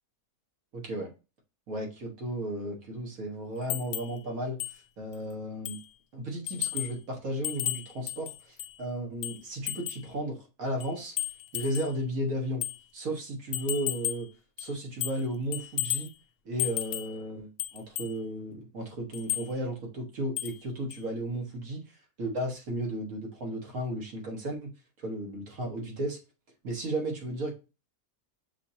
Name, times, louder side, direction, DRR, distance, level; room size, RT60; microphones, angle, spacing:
voice 1, 0.7-1.1 1.7-5.8 6.1-11.2 11.5-12.6 12.9-14.3 14.6-16.1 16.5-24.7 25.0-26.2 26.6-27.5, right 1 dB, 65° right, 0 dB, 1.8 m, -34 dB
sound 1, 3.7-4.2 4.6-4.8 5.1-5.2 5.7-5.9 6.5-7.0 7.4-8.8 9.2-10.1 10.8-12.0 12.6-12.8 13.5-14.3 14.6-15.3 15.5-16.1 16.6-17.2 17.6-18.2 19.1-19.5 20.4-20.6 20.9-21.0, left 14 dB, 85° left, 1.1 m, -34 dB
6.1 x 2.9 x 2.8 m, 0.29 s
omnidirectional pair, 1.6 m